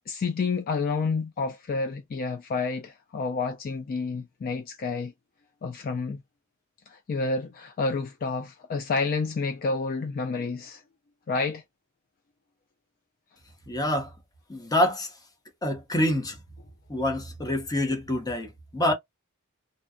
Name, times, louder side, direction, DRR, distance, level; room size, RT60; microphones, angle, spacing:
voice 1, 0.1-5.1 5.6-6.2 6.9-10.8 11.3-11.6, left 4 dB, 45° left, 0.3 m, -29 dB
voice 2, 13.7-14.1 14.5-15.1 15.6-16.4 16.9-18.9, left 1 dB, 20° left, 0.7 m, -26 dB
2.7 x 2.1 x 2.5 m
head